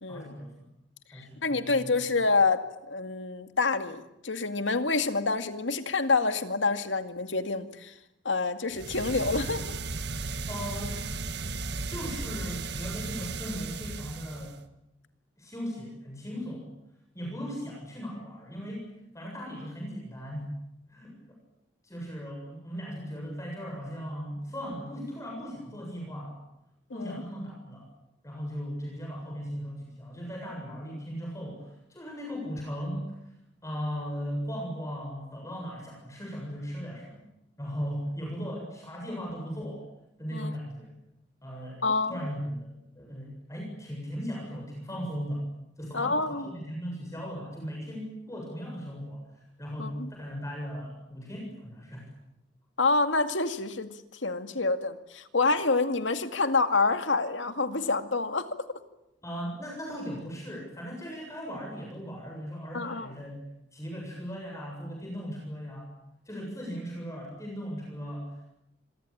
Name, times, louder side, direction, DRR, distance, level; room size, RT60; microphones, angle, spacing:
voice 1, 0.1-0.5 1.1-2.0 10.5-11.0 11.9-14.6 15.4-16.7 17.1-18.8 19.1-20.6 20.9-21.4 21.8-26.4 26.9-27.9 28.2-33.2 33.6-37.2 37.6-39.8 40.2-40.9 41.4-45.5 45.8-49.2 49.6-52.1 59.2-65.9 66.3-68.5, equal, 15° left, -1 dB, 7.4 m, -37 dB
voice 2, 1.1-2.6 2.9-7.9 8.2-9.8 26.9-27.2 40.3-40.5 41.8-42.1 45.9-46.4 49.8-50.1 52.8-58.5 62.7-63.1, left 3 dB, 80° left, 9 dB, 2.3 m, -27 dB
sound 1, 8.7-14.6, right 3 dB, 60° right, 1.7 m, -35 dB
26.5 x 23.0 x 8.8 m, 0.87 s
head